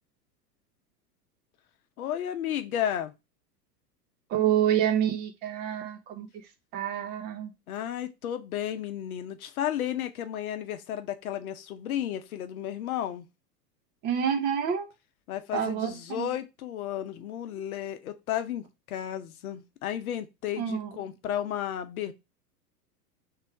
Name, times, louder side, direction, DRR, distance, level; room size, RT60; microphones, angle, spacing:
voice 1, 2.0-3.1 7.7-13.3 15.3-22.1, left 10 dB, 60° left, 0.8 m, -33 dB
voice 2, 4.3-6.3 6.7-7.5 14.0-14.9 15.5-16.3 20.6-20.9, right 9 dB, 20° right, 0.5 m, -27 dB
3.3 x 3.1 x 4.6 m
figure-of-eight pair, 95°, 48 cm